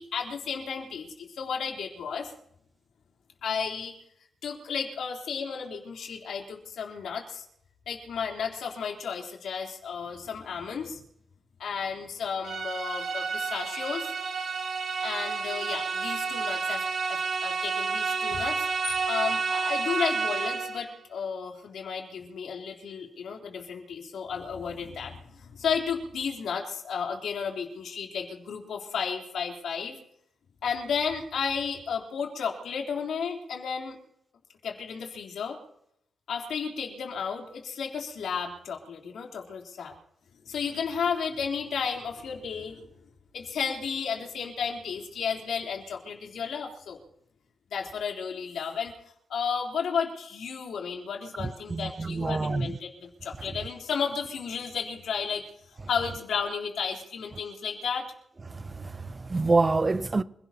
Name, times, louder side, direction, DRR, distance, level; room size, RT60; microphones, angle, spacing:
voice 1, 0.0-2.3 3.4-3.9 4.4-7.4 7.9-11.0 11.6-14.1 15.0-16.8 17.1-30.0 30.6-34.0 34.6-35.6 36.3-39.9 40.5-42.9 43.3-47.0 47.7-48.9 49.3-55.4 55.9-58.0, left 6 dB, 85° left, 3.6 m, -33 dB
sound 1, 12.4-20.9, right 5 dB, 65° right, 2.0 m, -30 dB
voice 2, 51.7-52.8 58.5-60.2, right 3 dB, 25° right, 0.6 m, -26 dB
28.0 x 17.0 x 2.9 m
wide cardioid pair, 120°, 0 cm